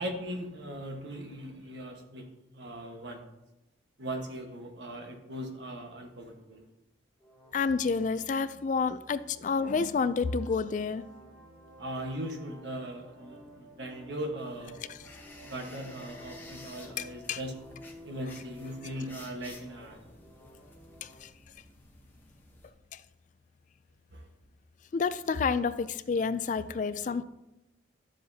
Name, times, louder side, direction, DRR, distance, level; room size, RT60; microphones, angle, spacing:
voice 1, 0.0-2.3 2.5-3.2 4.0-6.6 11.8-14.8 15.4-17.6 18.0-20.1 24.1-24.2, right 1 dB, 65° right, 3 dB, 1.3 m, -39 dB
sound 1, 7.2-21.2, equal, 15° right, 3.2 m, -54 dB
voice 2, 7.5-11.1 14.9-15.0 17.0-17.4 21.0-21.3 24.9-27.2, left 5 dB, 40° left, 14 dB, 0.3 m, -29 dB
sound 2, 14.4-22.7, left 2 dB, 10° left, 0.9 m, -53 dB
12.0 x 7.4 x 2.8 m, 0.91 s
head